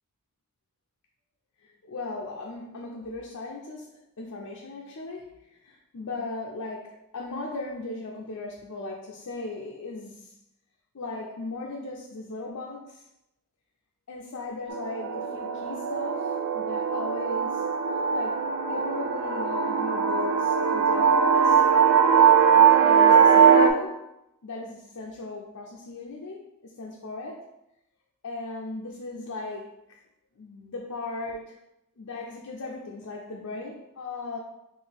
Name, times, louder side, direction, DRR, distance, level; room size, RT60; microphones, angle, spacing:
voice 1, 1.8-5.3 5.6-10.3 10.9-13.0 14.1-17.6 18.1-18.4 18.7-21.6 22.5-24.0 24.4-27.4 28.2-29.7 30.4-31.5 32.0-34.4, left 2 dB, 70° left, -2 dB, 0.6 m, -37 dB
sound 1, 14.7-23.7, right 7 dB, 60° right, 0.4 m, -20 dB
4.4 x 2.6 x 3.4 m, 0.86 s
head